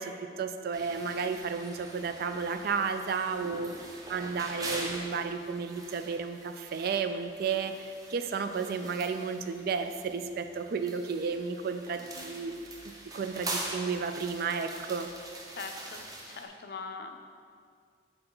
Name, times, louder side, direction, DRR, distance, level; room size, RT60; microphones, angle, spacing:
voice 1, 0.0-12.7 13.1-15.1, right 5 dB, 55° right, 8 dB, 0.3 m, -33 dB
sound 1, 0.7-16.5, right 2 dB, 20° right, 0.6 m, -43 dB
voice 2, 15.5-17.2, left 4 dB, 60° left, 6 dB, 0.5 m, -42 dB
7.8 x 3.9 x 3.9 m, 2.2 s
head